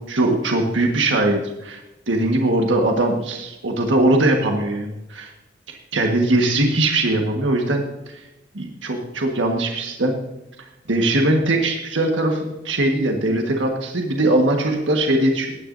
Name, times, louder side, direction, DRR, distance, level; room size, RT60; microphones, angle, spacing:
voice 1, 0.1-5.3 5.7-7.8 8.1-8.3 8.5-10.1 10.6-15.5, right 1 dB, 85° right, 2 dB, 1.5 m, -21 dB
16.0 x 10.5 x 2.6 m, 0.96 s
head